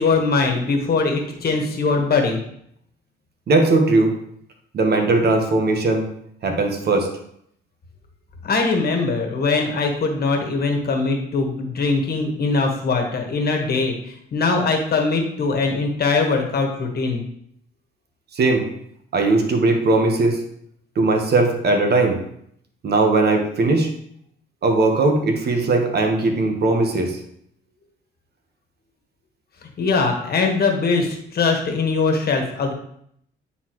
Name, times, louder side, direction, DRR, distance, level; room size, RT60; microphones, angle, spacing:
voice 1, 0.0-2.4 8.4-17.2 29.8-32.7, left 4 dB, 50° left, 2 dB, 1.5 m, -21 dB
voice 2, 3.5-4.1 4.7-6.1 6.4-7.1 18.3-18.6 19.1-20.4 21.0-22.2 22.8-23.9 24.6-27.2, right 2 dB, 55° right, 4 dB, 1.2 m, -18 dB
9.7 x 4.0 x 3.0 m, 0.70 s
cardioid pair, 90°, 20 cm